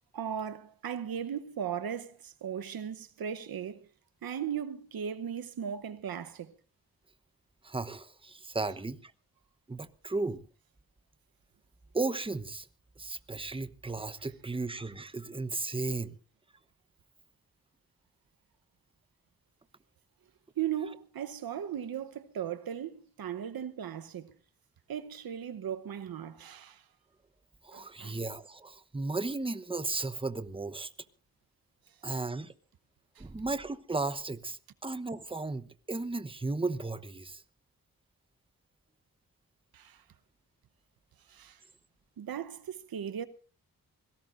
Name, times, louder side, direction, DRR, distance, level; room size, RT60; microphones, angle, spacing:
voice 1, 0.1-3.9 4.2-6.5 20.6-24.3 24.9-26.8 27.7-28.2 32.1-32.2 33.2-33.3 39.7-40.0 41.3-41.6 42.2-43.3, right 9 dB, 80° right, 1.0 m, -37 dB
voice 2, 7.6-9.1 9.7-10.4 11.9-12.7 13.0-16.1 27.6-30.9 32.0-32.5 33.2-37.4, right 3 dB, 15° right, 1.0 m, -35 dB
25.5 x 17.5 x 2.6 m
cardioid pair, 65°, 36 cm